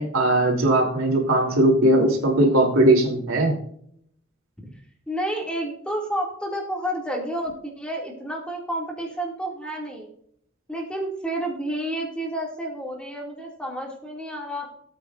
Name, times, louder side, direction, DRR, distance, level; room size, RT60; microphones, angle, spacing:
voice 1, 0.0-3.5, right 1 dB, 85° right, 0 dB, 3.2 m, -19 dB
voice 2, 5.1-10.1 10.7-14.7, right 1 dB, 5° left, -1 dB, 2.2 m, -30 dB
17.5 x 8.5 x 2.5 m, 0.66 s
head